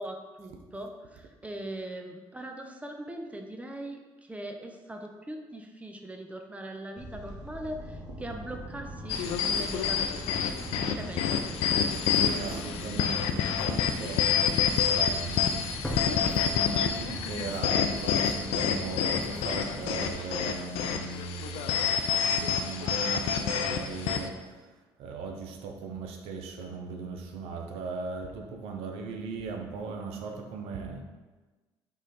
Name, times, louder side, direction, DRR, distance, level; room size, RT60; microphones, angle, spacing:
voice 1, 0.0-10.4 10.9-11.6, right 1 dB, 15° right, 3 dB, 0.6 m, -41 dB
sound 1, 7.0-20.1, right 1 dB, 45° right, 1.2 m, -42 dB
sound 2, 9.1-24.3, left 7 dB, 75° left, 0.4 m, -28 dB
voice 2, 11.9-14.5 14.9-22.0 22.3-31.0, right 4 dB, 80° right, 3 dB, 0.6 m, -38 dB
sound 3, 15.8-17.3 17.6-17.7, equal, 10° left, 0.9 m, -39 dB
3.8 x 3.1 x 4.1 m, 1.2 s
supercardioid pair, 70°, 10 cm